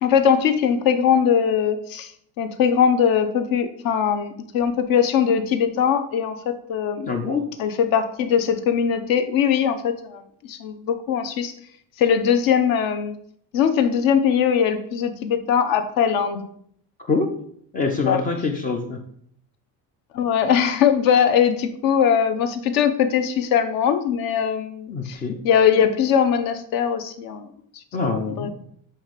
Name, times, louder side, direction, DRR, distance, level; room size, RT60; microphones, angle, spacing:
voice 1, 0.0-2.1 2.4-7.2 7.6-10.2 10.5-11.5 12.0-13.1 13.5-16.4 18.1-18.2 20.1-25.2 25.4-27.4 28.0-28.5, left 8 dB, 55° left, 9 dB, 0.8 m, -21 dB
voice 2, 7.1-7.5 17.1-17.3 17.7-19.0 24.9-25.4 27.9-28.5, left 4 dB, 25° left, 5 dB, 0.3 m, -24 dB
7.0 x 3.2 x 5.0 m, 0.66 s
cardioid pair, 170°, 41 cm